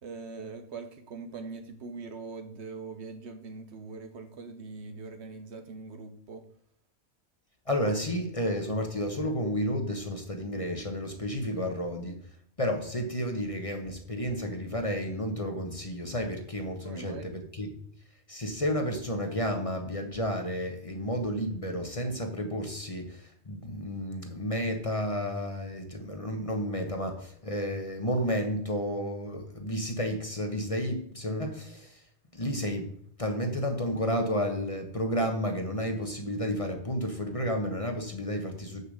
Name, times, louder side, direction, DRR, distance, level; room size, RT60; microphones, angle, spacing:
voice 1, 0.0-6.4 16.8-17.3, right 4 dB, 75° right, 7 dB, 1.1 m, -42 dB
voice 2, 7.7-12.2 12.6-17.7 18.3-32.0 32.3-32.9 33.2-38.8, equal, 30° left, 3 dB, 1.2 m, -31 dB
7.0 x 6.8 x 6.4 m, 0.65 s
omnidirectional pair, 1.1 m